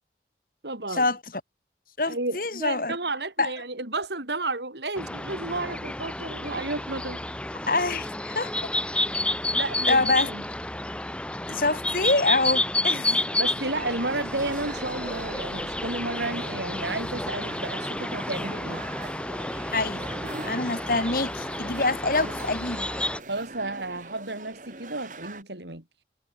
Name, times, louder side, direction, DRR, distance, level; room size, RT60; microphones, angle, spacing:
voice 1, 0.6-1.1 2.0-7.2 9.5-10.4 13.1-18.8 22.2-22.3 23.3-25.8, right 2 dB, 75° right, 4.5 m, -32 dB
voice 2, 2.0-3.0 3.4-3.5 7.7-8.5 9.9-10.3 11.5-13.2 19.7-20.2 20.5-22.9, left 2 dB, 50° left, 2.9 m, -25 dB
sound 1, 5.0-23.2, left 1 dB, 5° left, 0.9 m, -30 dB
sound 2, 13.8-25.4, right 3 dB, 45° right, 2.8 m, -42 dB
head